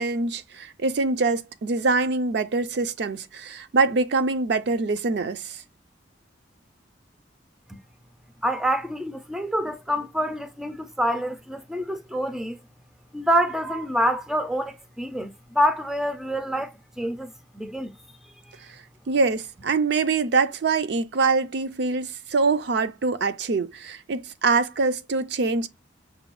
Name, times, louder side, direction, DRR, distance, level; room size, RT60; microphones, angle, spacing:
voice 1, 0.0-5.6 19.1-25.7, right 4 dB, 60° right, 0.4 m, -24 dB
voice 2, 8.4-12.6 13.1-15.3 15.6-16.7 17.0-17.3 17.6-17.9, equal, ahead, 0.4 m, -26 dB
6.0 x 2.3 x 3.0 m
head